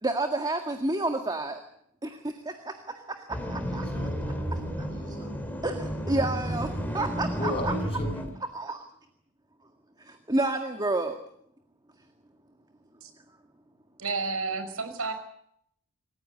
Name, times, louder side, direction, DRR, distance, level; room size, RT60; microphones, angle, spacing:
voice 1, 0.0-1.6 2.0-3.9 4.8-5.2 5.6-6.7 6.9-7.7 8.5-8.9 10.0-11.2, right 2 dB, 20° right, 5 dB, 1.9 m, -30 dB
sound 1, 3.3-8.3, equal, 10° left, 3.8 m, -32 dB
voice 2, 3.7-5.3 7.4-8.4, left 1 dB, 25° left, 4 dB, 7.0 m, -36 dB
voice 3, 14.0-15.1, right 4 dB, 75° right, 9 dB, 5.3 m, -31 dB
27.5 x 15.5 x 9.6 m, 0.72 s
head